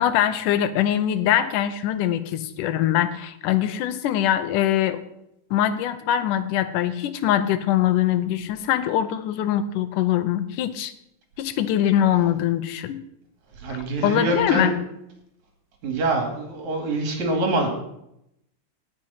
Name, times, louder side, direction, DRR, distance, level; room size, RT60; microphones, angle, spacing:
voice 1, 0.0-5.0 5.5-10.9 11.4-13.0 13.7-14.7, left 11 dB, 85° left, 11 dB, 2.3 m, -23 dB
voice 2, 13.6-14.7 15.8-17.7, right 2 dB, 60° right, 3 dB, 3.5 m, -25 dB
18.5 x 6.5 x 5.7 m, 0.80 s
omnidirectional pair, 3.8 m